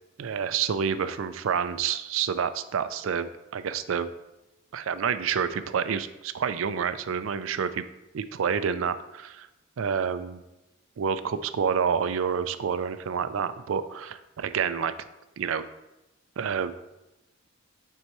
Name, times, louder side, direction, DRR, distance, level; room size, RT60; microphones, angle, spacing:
voice 1, 0.2-4.1 4.7-7.8 8.1-9.5 9.8-10.4 11.0-14.9 15.4-15.6 16.4-16.7, right 7 dB, 80° right, 12 dB, 0.4 m, -28 dB
8.1 x 4.6 x 3.0 m, 0.97 s
head